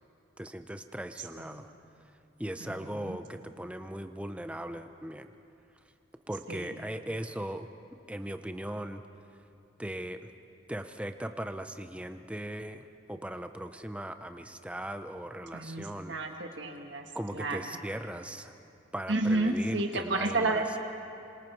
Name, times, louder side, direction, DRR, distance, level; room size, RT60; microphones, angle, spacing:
voice 1, 0.4-1.7 2.1-2.2 2.4-5.3 6.3-7.7 8.1-9.0 9.8-10.3 10.7-16.2 17.1-18.5 18.9-20.6, right 1 dB, 5° right, 8 dB, 0.6 m, -38 dB
voice 2, 15.5-17.0 17.3-17.6 19.1-20.8, right 2 dB, 65° right, 3 dB, 1.5 m, -31 dB
27.5 x 26.0 x 4.6 m, 2.7 s
head